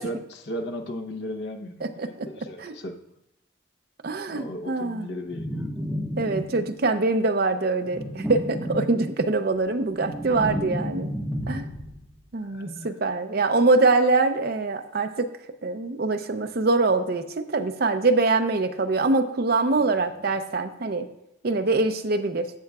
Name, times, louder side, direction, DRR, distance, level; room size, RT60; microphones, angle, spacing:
voice 1, 0.0-3.0 4.3-5.7 12.4-12.9, equal, 60° left, 5 dB, 0.9 m, -36 dB
voice 2, 1.8-2.3 2.6-2.7 4.0-5.1 6.2-11.1 11.5-11.7 12.3-15.3 15.6-21.1 21.4-22.5, right 3 dB, 55° right, 7 dB, 0.6 m, -24 dB
sound 1, 5.3-6.9 7.8-9.3 9.7-12.1, equal, 5° right, 1.5 m, -32 dB
12.0 x 7.6 x 2.4 m, 0.84 s
head